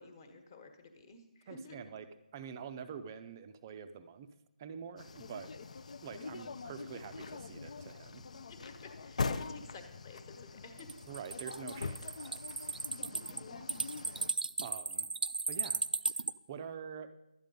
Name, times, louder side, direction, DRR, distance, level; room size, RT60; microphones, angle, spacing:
voice 1, 0.0-1.8 8.5-10.9 13.0-13.6, left 3 dB, 25° left, 7 dB, 1.3 m, -52 dB
voice 2, 1.5-2.1 2.3-4.3 4.6-5.5 6.0-8.3 11.1-12.9 14.0-14.3 14.6-15.1 15.5-15.8 16.2-17.1, right 7 dB, 20° right, 9 dB, 0.5 m, -46 dB
sound 1, 5.0-14.3, left 4 dB, 50° left, 0.5 m, -43 dB
sound 2, 10.8-16.3, right 4 dB, 85° right, 0.4 m, -36 dB
12.0 x 9.1 x 5.2 m, 0.91 s
hypercardioid pair, 170°, 5 cm